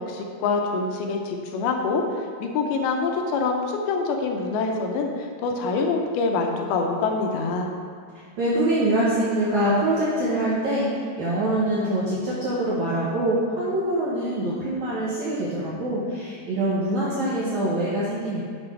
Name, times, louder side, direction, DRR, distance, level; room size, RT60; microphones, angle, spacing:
voice 1, 0.1-2.0 2.4-7.7, left 4 dB, 80° left, 2 dB, 2.4 m, -25 dB
voice 2, 8.4-18.4, right 1 dB, 90° right, -8 dB, 1.6 m, -24 dB
7.9 x 6.0 x 4.4 m, 2.1 s
omnidirectional pair, 5.0 m